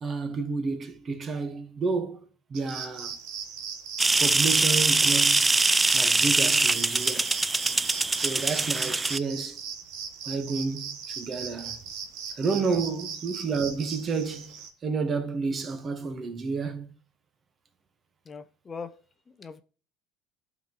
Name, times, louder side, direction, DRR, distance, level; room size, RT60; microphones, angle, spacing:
voice 1, 0.0-2.2 2.5-3.2 4.2-5.6 5.9-7.3 8.2-9.6 10.3-11.8 12.4-16.9, right 4 dB, 35° right, 1.1 m, -30 dB
sound 1, 2.5-14.7, right 6 dB, 70° right, 1.2 m, -38 dB
sound 2, 4.0-9.2, right 3 dB, 15° right, 0.3 m, -23 dB
voice 2, 18.3-18.9 19.3-19.6, left 5 dB, 30° left, 0.6 m, -40 dB
11.5 x 3.9 x 3.0 m
supercardioid pair, 90°, 0 cm